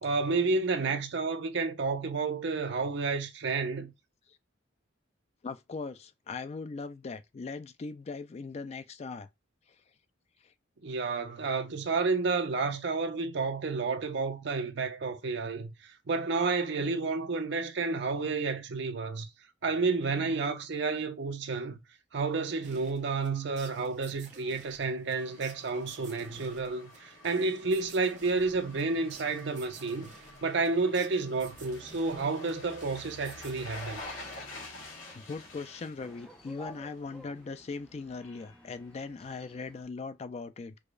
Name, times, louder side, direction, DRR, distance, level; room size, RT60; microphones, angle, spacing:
voice 1, 0.0-3.9 10.8-19.3 19.6-21.8 22.1-30.1 30.4-34.0, right 4 dB, 60° right, 0.6 m, -30 dB
voice 2, 5.4-9.3 9.7-9.8 10.4-10.5 35.1-40.8, left 4 dB, 35° left, 0.3 m, -40 dB
sound 1, 22.6-34.8, right 4 dB, 40° right, 0.9 m, -54 dB
sound 2, 25.2-37.1 37.4-37.5, left 2 dB, 75° left, 1.5 m, -48 dB
sound 3, 33.8-39.8, equal, 5° left, 0.7 m, -53 dB
4.8 x 2.1 x 2.4 m
head